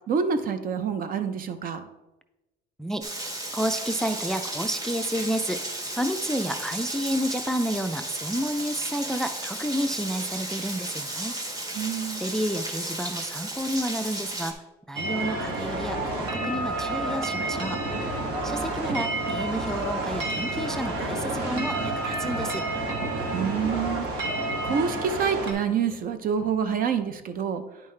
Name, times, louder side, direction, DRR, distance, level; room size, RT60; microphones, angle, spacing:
voice 1, 0.1-1.8 11.8-12.2 23.3-24.1 24.6-27.6, right 6 dB, 55° right, 9 dB, 0.7 m, -27 dB
Rain, 3.0-14.5, right 1 dB, 20° right, 1.1 m, -34 dB
voice 2, 3.5-5.6 6.0-11.4 12.2-14.6 14.9-17.8 18.4-22.7, equal, 5° left, 9 dB, 0.4 m, -30 dB
sound 1, 15.0-25.5, right 2 dB, 85° right, 1.4 m, -29 dB
9.7 x 5.4 x 3.2 m, 1.0 s
cardioid pair, 110°, 17 cm